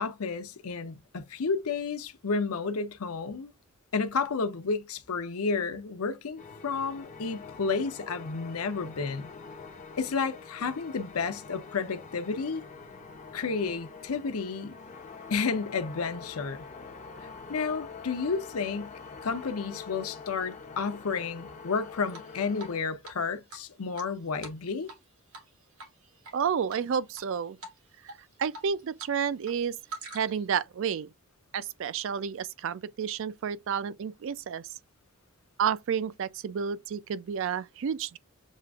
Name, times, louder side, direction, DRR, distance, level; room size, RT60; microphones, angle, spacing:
voice 1, 0.0-3.5 3.9-9.3 10.0-12.7 13.3-14.7 15.3-16.6 17.5-18.9 19.2-24.9, left 5 dB, 80° left, 0.7 m, -31 dB
sound 1, 6.4-22.8, left 4 dB, 35° left, 0.5 m, -45 dB
Drip, 22.1-22.8 23.0-23.1 23.5-25.0 25.3-25.5 25.8-26.3 26.7-27.2 27.6-27.8 28.1-29.1 29.4-30.5, right 3 dB, 80° right, 1.4 m, -45 dB
voice 2, 26.3-27.6 28.4-29.7 30.1-31.1 31.5-34.7 35.6-38.2, right 7 dB, 60° right, 0.3 m, -30 dB
7.3 x 2.5 x 2.3 m
head